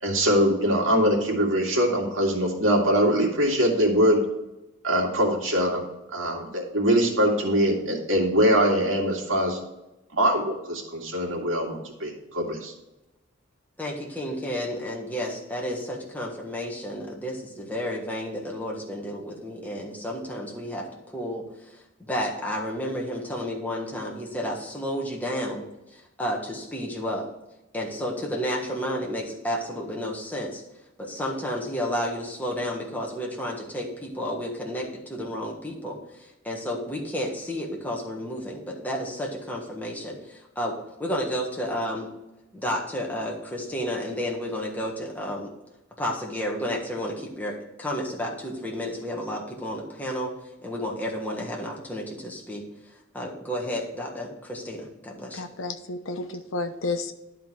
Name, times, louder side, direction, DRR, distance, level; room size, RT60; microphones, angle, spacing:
voice 1, 0.0-4.2 4.8-5.8 6.1-9.6 10.1-12.7, equal, 90° right, 0 dB, 2.1 m, -23 dB
voice 2, 13.8-20.9 21.1-21.5 22.0-25.6 26.2-27.3 27.7-30.6 31.0-42.1 42.5-45.5 46.0-50.3 50.6-52.6 53.1-55.4, equal, 10° left, -2 dB, 1.4 m, -31 dB
voice 3, 55.3-57.1, left 3 dB, 85° left, 8 dB, 0.8 m, -31 dB
11.5 x 3.9 x 4.7 m, 0.97 s
head